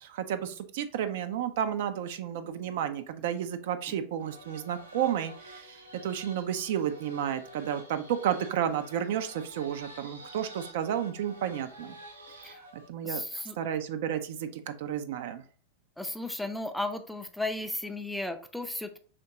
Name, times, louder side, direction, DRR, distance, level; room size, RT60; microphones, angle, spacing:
voice 1, 0.0-12.0 12.4-15.4, right 9 dB, 55° right, 9 dB, 0.4 m, -32 dB
sound 1, 4.2-12.9, right 1 dB, 85° right, 1.0 m, -49 dB
voice 2, 13.0-13.6 16.0-19.0, left 1 dB, ahead, 6 dB, 0.5 m, -34 dB
5.0 x 3.5 x 2.8 m, 0.43 s
figure-of-eight pair, 90°, 0 cm